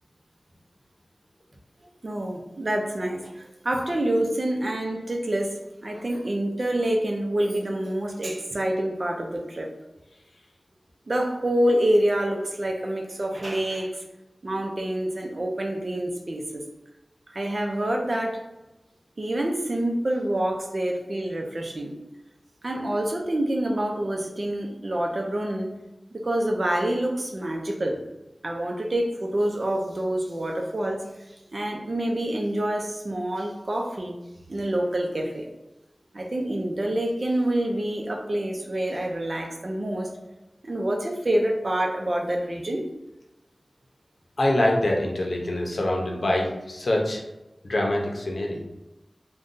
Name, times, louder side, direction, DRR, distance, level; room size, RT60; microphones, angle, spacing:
voice 1, 2.0-9.7 11.1-14.0 14.4-16.6 17.3-18.4 19.2-22.0 22.6-25.7 26.1-28.0 28.4-34.2 34.5-35.5 36.1-40.1 40.6-42.8, right 1 dB, 55° right, 1 dB, 0.6 m, -27 dB
voice 2, 44.4-47.2 47.6-48.6, left 1 dB, 80° left, -1 dB, 0.6 m, -24 dB
2.6 x 2.2 x 3.7 m, 0.98 s
wide cardioid pair, 60°, 0 cm